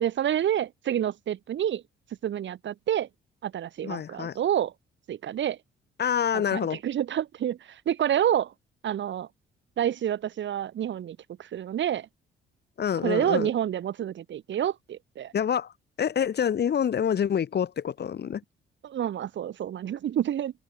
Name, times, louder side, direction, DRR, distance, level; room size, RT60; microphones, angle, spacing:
voice 1, 0.0-1.8 2.2-3.1 3.4-4.7 5.1-5.6 6.3-8.5 8.8-9.3 9.8-12.1 13.0-15.3 18.8-20.5, right 10 dB, 70° right, 7.6 m, -28 dB
voice 2, 3.8-4.4 6.0-6.8 12.8-13.5 15.3-15.7 16.0-18.4, left 8 dB, 55° left, 6.7 m, -27 dB
cardioid pair, 90°, 20 cm